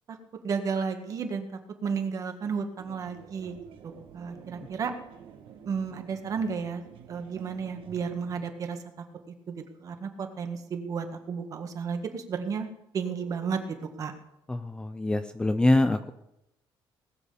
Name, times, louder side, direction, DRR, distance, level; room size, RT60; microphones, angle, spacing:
voice 1, 0.4-3.6 3.8-4.9 5.7-8.8 9.5-12.7 12.9-14.1, right 6 dB, 40° right, 6 dB, 1.7 m, -33 dB
sound 1, 2.8-8.4, right 7 dB, 70° right, 1.7 m, -49 dB
voice 2, 14.5-16.1, left 2 dB, 10° left, 9 dB, 0.5 m, -24 dB
19.0 x 7.8 x 6.9 m, 0.85 s
cardioid pair, 165°, 9 cm